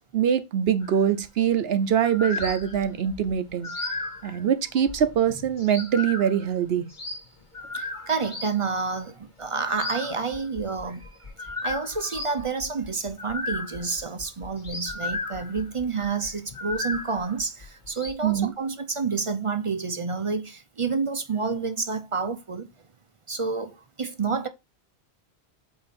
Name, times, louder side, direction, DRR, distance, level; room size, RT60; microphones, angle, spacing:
voice 1, 0.1-3.7 4.2-6.9 18.2-18.5, right 8 dB, 70° right, 0.9 m, -23 dB
sound 1, 0.8-1.0 1.9-8.5 9.6-18.1, left 3 dB, 45° left, 1.6 m, -35 dB
voice 2, 7.7-11.3 11.6-22.7 23.3-24.5, right 4 dB, 40° right, 0.6 m, -29 dB
8.1 x 2.9 x 4.2 m
omnidirectional pair, 1.1 m